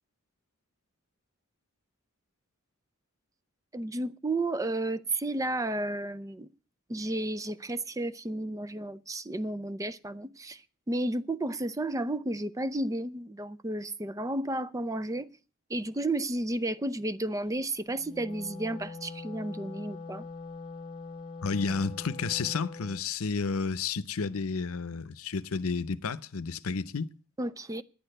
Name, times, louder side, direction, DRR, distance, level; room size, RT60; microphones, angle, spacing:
voice 1, 3.7-6.5 6.9-10.6 10.9-15.3 15.7-20.2 27.4-27.8, right 1 dB, 15° right, 0.5 m, -32 dB
Wind instrument woodwind instrument, 17.9-23.1, left 3 dB, 25° left, 1.0 m, -43 dB
voice 2, 21.4-27.1, left 4 dB, 75° left, 0.7 m, -31 dB
10.5 x 8.7 x 7.8 m
head